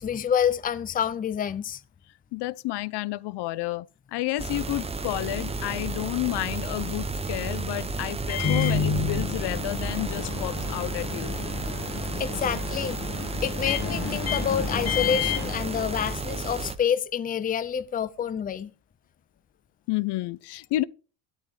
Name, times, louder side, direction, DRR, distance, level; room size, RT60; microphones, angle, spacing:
voice 1, 0.0-1.8 12.2-13.0 13.4-18.7, left 8 dB, 20° left, 0.6 m, -28 dB
voice 2, 2.3-11.4 19.9-20.8, left 17 dB, 65° left, 0.7 m, -30 dB
sound 1, 4.4-16.8, right 3 dB, 15° right, 0.7 m, -32 dB
Microwave oven, 8.2-16.4, left 6 dB, 35° left, 1.6 m, -30 dB
12.5 x 11.5 x 3.3 m
cardioid pair, 150°, 44 cm